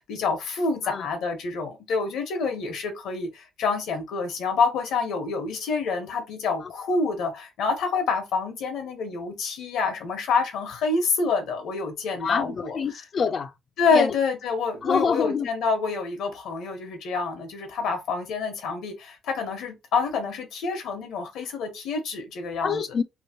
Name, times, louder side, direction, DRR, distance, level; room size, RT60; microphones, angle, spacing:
voice 1, 0.0-12.8 13.8-22.8, left 4 dB, 75° left, 1.2 m, -27 dB
voice 2, 12.2-13.5 13.9-14.1 14.8-15.5 22.6-23.0, left 6 dB, 45° left, 0.5 m, -26 dB
3.1 x 2.6 x 2.9 m
cardioid pair, 100°, 0 cm